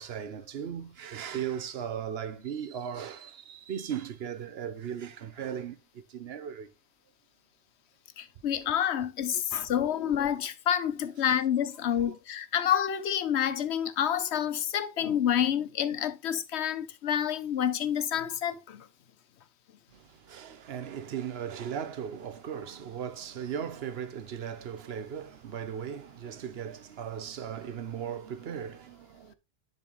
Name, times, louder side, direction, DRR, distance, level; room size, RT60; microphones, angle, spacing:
voice 1, 0.0-6.7 9.3-9.4 9.8-9.9 12.0-12.2 19.9-29.3, right 8 dB, 70° right, 1.0 m, -37 dB
voice 2, 8.2-18.9, left 9 dB, 85° left, 1.0 m, -28 dB
10.0 x 4.5 x 3.0 m
omnidirectional pair, 1.1 m